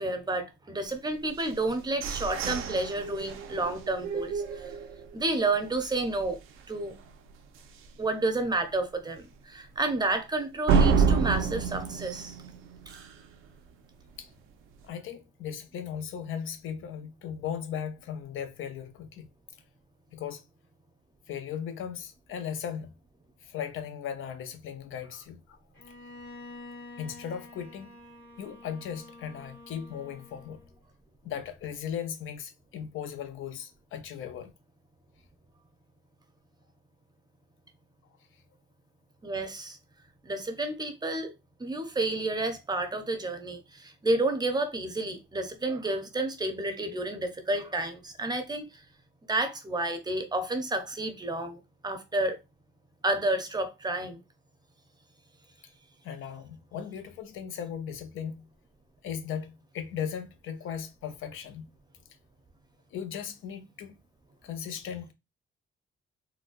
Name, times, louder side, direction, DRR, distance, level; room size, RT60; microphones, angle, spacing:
voice 1, 0.0-4.6 5.1-6.4 6.7-6.9 8.0-12.3 39.2-39.8 40.2-41.3 41.6-48.7 49.3-52.4 53.0-54.2, right 2 dB, 20° right, 0.6 m, -30 dB
sound 1, 1.4-5.3 5.7-5.8 6.2-6.6 7.0-7.1 7.6-7.7 10.7-13.3, right 5 dB, 85° right, 0.5 m, -28 dB
voice 2, 14.8-19.3 20.1-20.4 21.3-22.9 23.4-25.6 27.0-27.9 28.4-30.6 31.2-34.5 56.0-58.5 59.0-61.7 62.9-64.0 64.4-65.1, left 8 dB, 80° left, 0.6 m, -37 dB
Bowed string instrument, 25.7-30.8, left 2 dB, 55° left, 1.9 m, -48 dB
3.9 x 2.2 x 2.4 m
cardioid pair, 120°, 21 cm